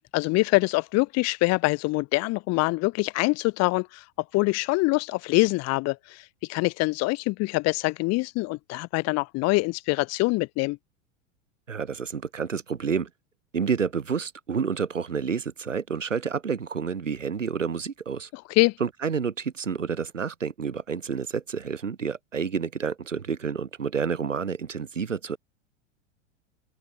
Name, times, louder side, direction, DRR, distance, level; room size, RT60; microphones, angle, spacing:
voice 1, 0.1-4.0 4.3-10.8 18.3-18.7, left 23 dB, 45° left, 3.7 m, -24 dB
voice 2, 11.7-13.1 13.5-18.3 18.8-25.4, right 6 dB, 80° right, 5.6 m, -29 dB
open air
figure-of-eight pair, 90°, 37 cm